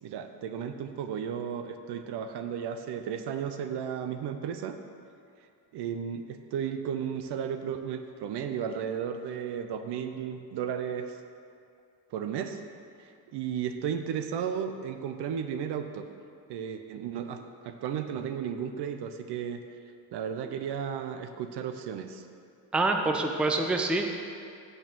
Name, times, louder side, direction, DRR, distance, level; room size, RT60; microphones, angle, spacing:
voice 1, 0.0-4.8 5.7-11.2 12.1-12.6 13.0-16.0 16.5-19.6 20.1-22.2, right 8 dB, 65° right, 8 dB, 0.7 m, -34 dB
voice 2, 22.7-24.1, right 2 dB, 5° right, 3 dB, 0.5 m, -26 dB
6.6 x 6.1 x 6.8 m, 2.4 s
cardioid pair, 120°, 43 cm